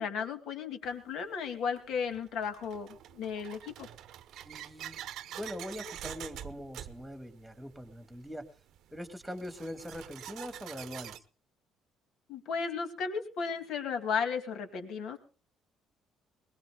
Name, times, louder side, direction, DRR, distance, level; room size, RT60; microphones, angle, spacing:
voice 1, 0.0-2.9 3.1-3.9 12.3-15.2, left 6 dB, 65° left, 7 dB, 2.4 m, -34 dB
sound 1, 0.8-0.9 1.8-11.2, right 11 dB, 65° right, 0.9 m, -46 dB
voice 2, 4.4-5.0 5.3-8.5 8.9-11.2, equal, ahead, 9 dB, 1.9 m, -42 dB
21.5 x 21.0 x 2.3 m, 0.36 s
cardioid pair, 145°, 0 cm